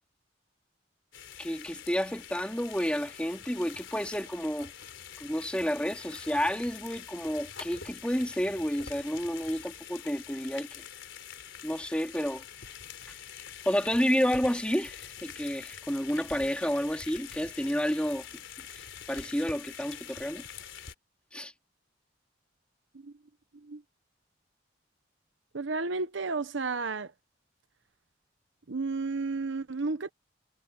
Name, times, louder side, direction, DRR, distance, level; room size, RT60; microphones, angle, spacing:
sound 1, 1.1-20.9, left 8 dB, 85° left, 3.9 m, -45 dB
voice 1, 1.4-4.7 5.2-10.8 11.6-12.4 13.1-13.2 13.7-18.2 18.7-20.4 21.3-21.5, equal, 5° left, 3.7 m, -30 dB
voice 2, 25.5-27.1 28.7-30.1, right 3 dB, 80° right, 0.9 m, -32 dB
head